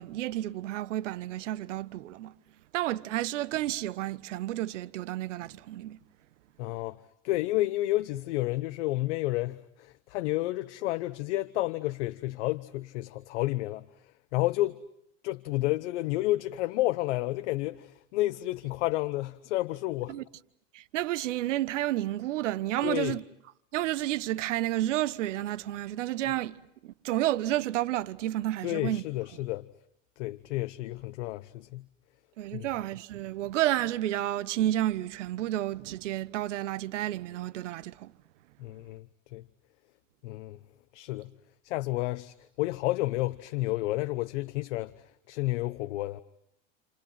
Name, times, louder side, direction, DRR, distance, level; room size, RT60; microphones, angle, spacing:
voice 1, 0.0-2.3 2.7-6.0 20.1-20.2 20.7-23.2 23.7-26.6 26.8-29.0 32.4-38.1, right 14 dB, 80° right, 1.3 m, -31 dB
voice 2, 6.6-7.0 7.2-13.8 14.3-14.8 15.2-20.2 22.8-23.2 28.6-29.7 30.2-31.8 32.5-32.7 38.6-39.1 39.3-39.4 40.2-40.6 40.9-41.3 41.6-46.2, left 18 dB, 70° left, 1.1 m, -31 dB
30.0 x 28.5 x 5.8 m
hypercardioid pair, 110°, 36 cm